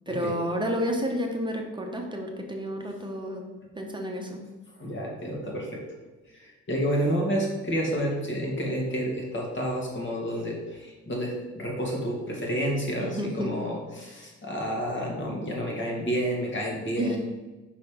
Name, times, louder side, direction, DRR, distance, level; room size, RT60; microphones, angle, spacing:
voice 1, 0.1-3.4 3.7-4.4 13.0-13.5 17.0-17.2, equal, 15° right, 1 dB, 1.0 m, -30 dB
voice 2, 4.8-5.8 6.3-17.2, equal, 40° left, -1 dB, 2.0 m, -30 dB
5.5 x 4.1 x 5.0 m, 1.2 s
cardioid pair, 90°, 30 cm